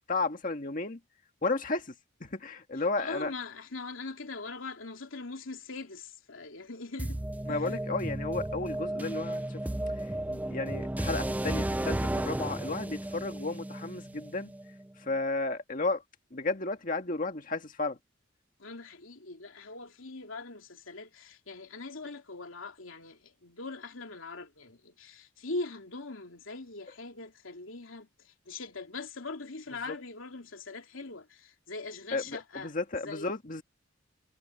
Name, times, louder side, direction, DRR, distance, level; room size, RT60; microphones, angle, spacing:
voice 1, 0.1-1.0 1.4-1.9 2.2-3.3 7.5-9.6 10.0-14.5 15.0-16.0 16.3-18.0 29.9-30.0 32.1-33.6, left 3 dB, 45° left, 1.7 m, -33 dB
voice 2, 3.0-7.2 7.5-7.8 18.6-32.7 33.0-33.3, left 3 dB, 85° left, 2.8 m, -41 dB
sound 1, 7.0-14.9, right 1 dB, 10° right, 0.4 m, -34 dB
head